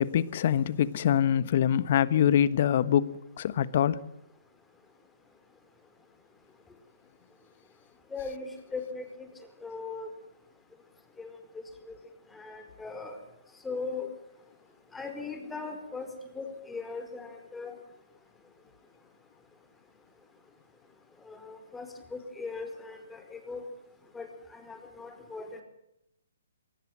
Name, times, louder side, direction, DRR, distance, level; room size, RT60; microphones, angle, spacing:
voice 1, 0.0-4.0, left 10 dB, 50° left, 16 dB, 1.3 m, -24 dB
voice 2, 8.1-9.3 9.6-10.1 11.2-12.0 12.3-13.2 13.6-14.1 14.9-17.8 21.2-23.6 24.1-25.6, left 4 dB, 10° left, 5 dB, 4.7 m, -39 dB
23.0 x 19.5 x 7.6 m, 0.82 s
figure-of-eight pair, 135°, 0 cm